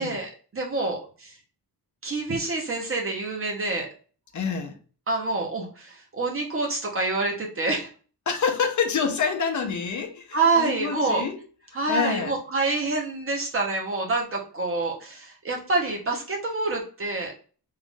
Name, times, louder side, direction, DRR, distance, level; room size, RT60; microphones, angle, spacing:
voice 1, 0.0-1.4 2.0-3.9 5.1-7.9 10.3-11.2 11.7-17.3, right 3 dB, 35° right, 0 dB, 0.9 m, -27 dB
voice 2, 4.3-4.8 8.3-11.4 11.9-12.4, left 6 dB, 50° left, 5 dB, 0.7 m, -27 dB
3.7 x 2.5 x 3.5 m, 0.39 s
wide cardioid pair, 175°, 40 cm